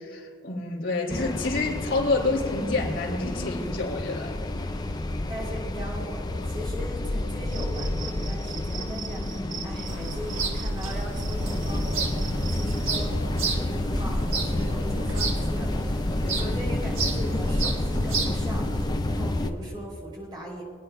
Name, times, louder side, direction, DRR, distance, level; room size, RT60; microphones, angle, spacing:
voice 1, 0.0-4.7, left 3 dB, 70° left, -3 dB, 3.0 m, -28 dB
sound 1, 1.1-19.5, left 1 dB, 20° left, 0.4 m, -30 dB
voice 2, 5.3-13.1 13.5-20.6, equal, 20° right, -3 dB, 3.0 m, -39 dB
Cricket, 7.5-13.1, right 7 dB, 65° right, 0.9 m, -42 dB
sound 2, 9.9-18.9, right 2 dB, 90° right, 1.4 m, -31 dB
25.5 x 9.6 x 2.2 m, 2.1 s
head